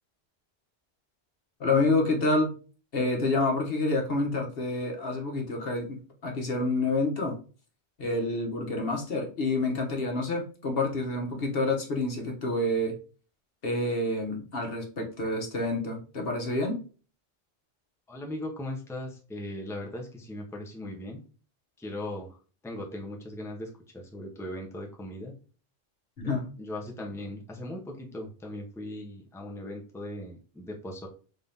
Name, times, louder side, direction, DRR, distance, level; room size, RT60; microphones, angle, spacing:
voice 1, 1.6-2.5 2.9-7.4 8.0-12.9 13.6-16.8 26.2-26.5, left 2 dB, 65° left, 1 dB, 1.3 m, -28 dB
voice 2, 18.1-21.2 21.8-22.4 22.6-25.3 26.2-31.1, left 1 dB, 5° left, 0 dB, 0.7 m, -38 dB
3.9 x 2.7 x 3.4 m, 0.37 s
omnidirectional pair, 1.0 m